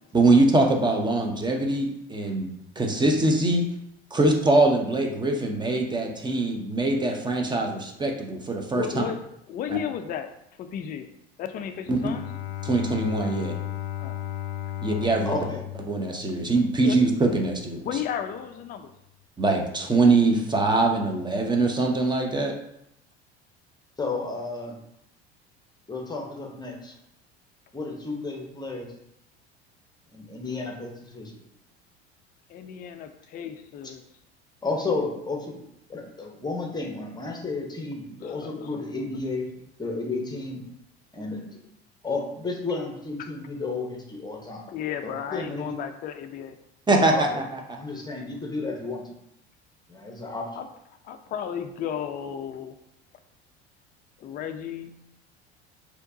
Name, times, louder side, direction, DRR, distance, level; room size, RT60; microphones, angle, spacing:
voice 1, 0.1-2.5 2.8-3.7 4.1-9.0 9.7-9.8 11.9-12.1 12.6-13.6 14.8-15.4 15.9-18.0 19.4-22.5 46.9-47.6, right 2 dB, 15° right, 2 dB, 0.7 m, -23 dB
voice 2, 8.7-9.2 9.5-10.3 10.6-11.1 11.4-12.2 14.0-14.2 16.8-17.0 17.8-18.9 32.5-34.0 38.2-38.7 43.2-43.3 44.7-46.6 47.2-47.3 50.6-50.7 51.0-52.8 54.2-54.9, left 8 dB, 30° left, 7 dB, 0.4 m, -34 dB
Bowed string instrument, 11.9-16.8, left 13 dB, 85° left, 0.5 m, -34 dB
voice 3, 15.2-15.6 24.0-24.8 25.9-26.9 27.7-28.9 30.1-31.3 34.6-35.6 35.9-39.5 39.8-40.6 41.1-41.4 42.0-44.6 45.0-45.7 47.1-47.4 47.8-49.1 49.9-50.5, left 3 dB, 10° left, 1 dB, 1.0 m, -32 dB
4.3 x 2.9 x 2.7 m, 0.77 s
hypercardioid pair, 70°, 33 cm